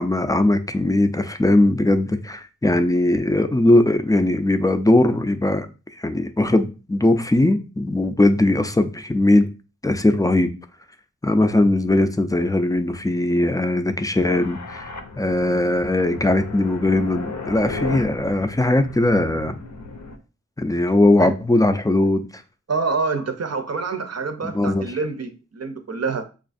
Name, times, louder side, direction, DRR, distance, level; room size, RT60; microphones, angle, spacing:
voice 1, 0.0-5.7 6.0-9.5 9.8-10.5 11.2-14.9 15.2-19.5 20.6-22.3 24.4-25.0, left 1 dB, 10° left, 0.3 m, -19 dB
sound 1, 14.2-20.2, left 3 dB, 75° left, 0.6 m, -35 dB
voice 2, 22.7-26.2, right 4 dB, 55° right, 0.6 m, -26 dB
5.9 x 2.4 x 2.5 m
wide cardioid pair, 65°, 30 cm